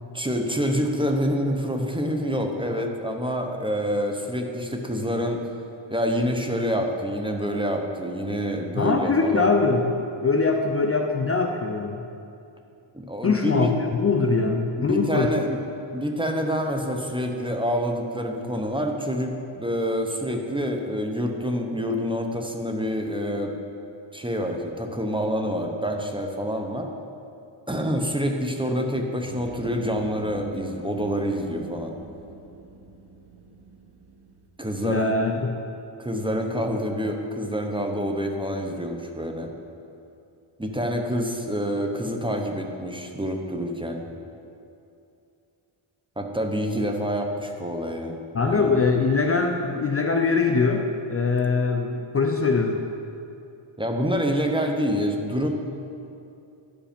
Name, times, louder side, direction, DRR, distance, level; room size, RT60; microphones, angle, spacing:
voice 1, 0.1-5.4 5.9-9.5 12.9-13.7 14.8-15.6 15.9-23.5 24.1-26.9 27.7-32.0 34.6-35.1 36.0-39.5 40.6-44.1 46.2-48.7 53.8-55.5, equal, 10° right, 3 dB, 0.8 m, -27 dB
voice 2, 8.8-9.9 10.2-12.0 13.2-15.3 34.8-35.5 48.3-52.8, left 4 dB, 30° left, 3 dB, 0.5 m, -22 dB
prison soundscape stylised, 29.3-34.5, right 2 dB, 60° right, 1.4 m, -43 dB
11.5 x 5.1 x 5.2 m, 2.7 s
cardioid pair, 85°, 48 cm